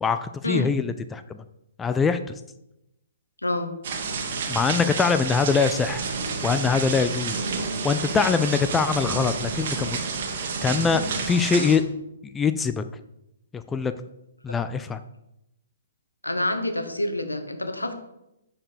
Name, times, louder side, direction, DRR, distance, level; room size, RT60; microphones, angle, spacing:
voice 1, 0.0-1.4 1.8-2.2 4.5-6.0 6.4-7.5 7.8-10.0 10.4-11.8 12.2-12.8 13.5-13.9 14.4-15.0, left 5 dB, 10° left, 10 dB, 0.4 m, -23 dB
sound 1, 3.8-11.8, right 4 dB, 50° right, 1.5 m, -30 dB
voice 2, 16.2-17.9, left 1 dB, 90° left, 7 dB, 1.1 m, -27 dB
10.5 x 4.6 x 5.1 m, 0.87 s
figure-of-eight pair, 125°, 0 cm